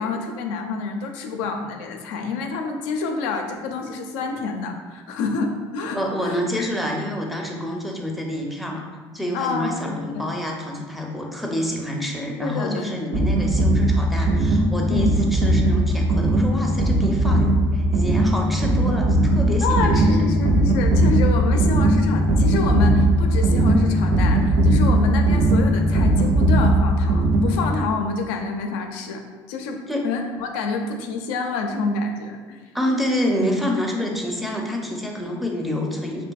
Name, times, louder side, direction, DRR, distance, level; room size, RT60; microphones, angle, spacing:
voice 1, 0.0-6.7 9.3-10.3 12.4-13.0 14.9-15.1 19.6-32.6, left 3 dB, 80° left, 4 dB, 0.4 m, -27 dB
voice 2, 5.9-8.9 9.1-20.3 29.9-30.1 32.7-36.3, left 1 dB, ahead, 0 dB, 0.5 m, -27 dB
sound 1, 13.1-27.8, right 1 dB, 65° right, 0.5 m, -19 dB
2.6 x 2.6 x 2.3 m, 1.4 s
supercardioid pair, 85°, 10 cm